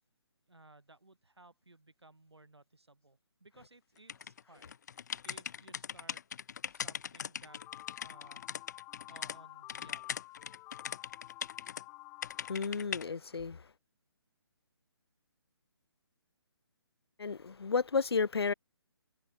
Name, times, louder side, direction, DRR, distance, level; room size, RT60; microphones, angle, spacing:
voice 1, 0.5-4.8 5.0-6.2 6.7-7.6 8.0-8.4 9.1-10.3, right 2 dB, 80° right, 8.0 m, -59 dB
sound 1, 4.1-9.4 9.7-11.8 12.2-13.0, left 8 dB, 40° left, 0.9 m, -40 dB
sound 2, 7.5-12.6, left 22 dB, 20° left, 5.5 m, -51 dB
voice 2, 12.5-13.7 17.2-18.5, left 5 dB, 70° left, 0.5 m, -32 dB
figure-of-eight pair, 140°, 14 cm